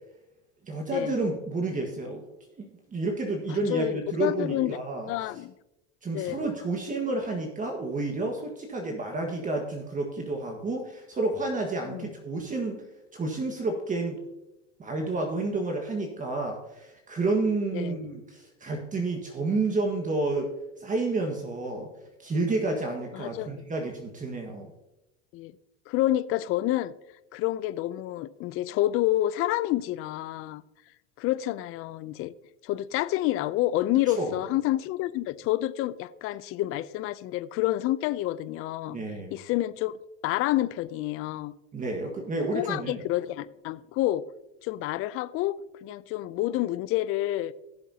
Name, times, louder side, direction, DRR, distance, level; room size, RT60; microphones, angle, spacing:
voice 1, 0.6-2.2 2.6-5.1 6.0-12.8 13.1-14.2 14.8-20.5 20.8-21.9 22.2-24.7 34.1-34.4 38.9-39.3 41.7-43.0, right 2 dB, 25° right, 1.6 m, -30 dB
voice 2, 3.5-4.8 5.1-5.5 6.1-6.4 11.8-12.2 17.7-18.0 23.1-23.7 25.3-25.5 25.9-26.9 27.3-30.6 31.2-32.3 32.6-39.0 39.3-39.9 40.2-41.5 42.5-44.2 44.6-47.5, left 15 dB, 40° left, 0.5 m, -28 dB
17.0 x 7.1 x 2.8 m
hypercardioid pair, 100°, 34 cm